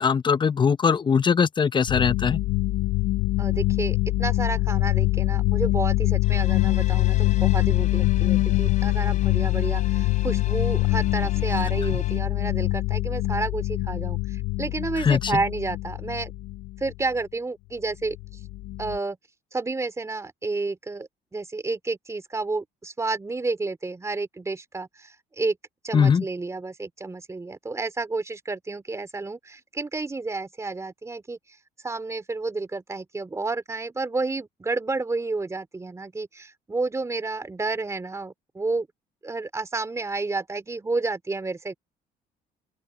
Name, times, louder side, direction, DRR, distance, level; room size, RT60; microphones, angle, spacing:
voice 1, 0.0-2.4 15.0-15.2 25.9-26.2, left 6 dB, 25° left, 0.7 m, -20 dB
sound 1, 1.9-17.0 18.1-19.0, left 18 dB, 80° left, 0.5 m, -24 dB
voice 2, 3.4-16.3 16.8-18.2 18.8-19.2 19.5-25.6 25.8-31.6 31.8-38.9 39.2-41.7, right 3 dB, 15° right, 2.7 m, -30 dB
sound 2, 6.2-12.2, left 8 dB, 45° left, 3.3 m, -44 dB
open air
cardioid pair, 110°, 17 cm